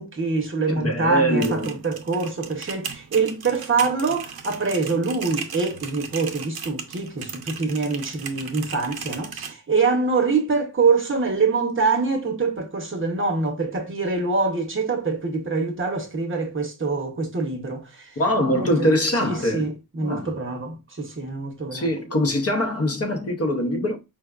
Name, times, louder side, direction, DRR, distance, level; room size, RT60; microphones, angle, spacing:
voice 1, 0.0-18.2 18.5-18.9 19.2-21.9, right 4 dB, 30° right, 0.8 m, -25 dB
voice 2, 0.8-1.7 18.2-19.7 20.0-20.3 21.7-24.0, equal, 40° left, 0.7 m, -23 dB
sound 1, 1.2-9.5, right 6 dB, 70° right, 0.7 m, -37 dB
4.6 x 2.2 x 2.3 m
wide cardioid pair, 110°, 39 cm